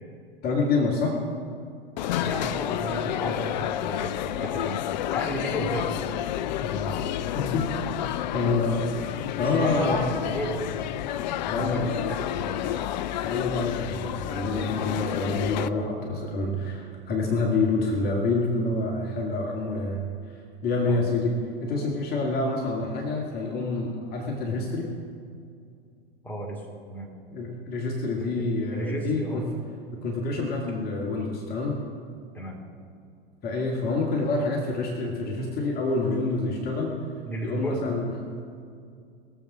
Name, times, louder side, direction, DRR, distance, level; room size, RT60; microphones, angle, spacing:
voice 1, 0.4-1.2 6.7-7.0 7.4-7.9 8.3-10.0 11.5-12.1 12.6-12.8 13.2-20.0 20.3-24.9 27.3-29.5 29.9-31.8 33.4-36.9 37.4-38.1, left 3 dB, 30° left, -1 dB, 2.1 m, -27 dB
sound 1, 2.0-15.7, left 12 dB, 50° left, 0.5 m, -30 dB
voice 2, 2.2-4.8 5.1-5.9 6.6-6.7 7.0-7.1 9.3-10.7 11.4-12.8 20.8-21.0 26.2-26.6 26.9-27.1 28.2-28.5 28.7-29.4 32.3-32.6 37.3-37.9, right 1 dB, 5° left, -1 dB, 2.6 m, -34 dB
21.0 x 7.4 x 6.1 m, 2.4 s
figure-of-eight pair, 90°, 29 cm